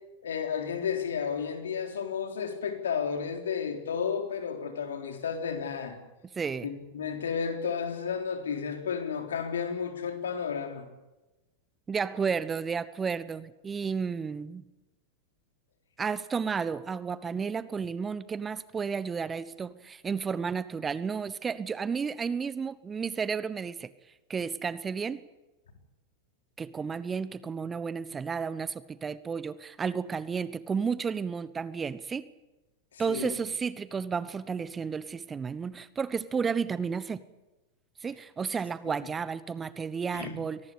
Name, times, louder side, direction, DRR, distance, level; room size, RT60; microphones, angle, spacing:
voice 1, 0.2-6.0 6.6-10.8 32.9-33.4 40.1-40.4, left 6 dB, 70° left, 5 dB, 4.0 m, -32 dB
voice 2, 6.3-6.7 11.9-14.6 16.0-23.9 24.3-25.2 26.6-32.3 33.0-37.2 38.0-40.6, right 6 dB, 20° right, 17 dB, 1.0 m, -32 dB
24.5 x 19.0 x 8.4 m, 1.0 s
figure-of-eight pair, 90°, 0 cm